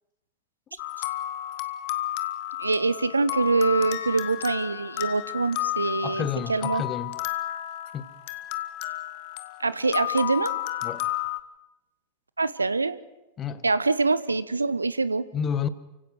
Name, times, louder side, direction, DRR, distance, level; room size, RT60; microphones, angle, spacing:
sound 1, 0.8-11.4, left 15 dB, 45° left, 1.2 m, -32 dB
voice 1, 2.6-6.8 9.6-10.5 12.4-13.0 13.6-15.2, right 3 dB, 80° right, 0.9 m, -24 dB
voice 2, 6.0-7.2 7.9-8.1 10.8-11.1 13.4-13.6 15.3-15.7, left 8 dB, 25° left, 1.1 m, -30 dB
29.5 x 16.5 x 6.5 m
figure-of-eight pair, 90°, 0 cm